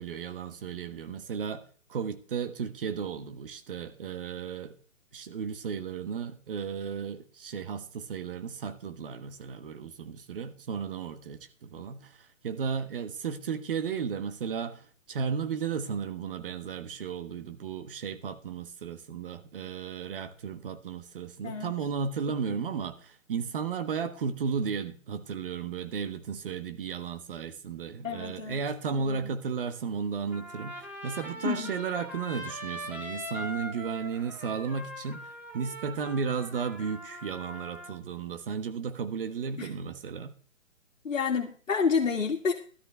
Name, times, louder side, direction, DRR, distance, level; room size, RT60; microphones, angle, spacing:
voice 1, 0.0-1.6 1.9-4.7 5.1-35.3 35.5-40.3, right 6 dB, 45° right, 9 dB, 1.4 m, -34 dB
voice 2, 28.0-28.6 29.0-29.3 31.4-31.7 39.6-39.7 41.0-42.5, left 5 dB, 70° left, 0 dB, 2.0 m, -29 dB
Trumpet, 30.3-38.0, equal, 5° right, 1.7 m, -41 dB
13.0 x 12.0 x 3.4 m, 0.42 s
figure-of-eight pair, 140°, 40 cm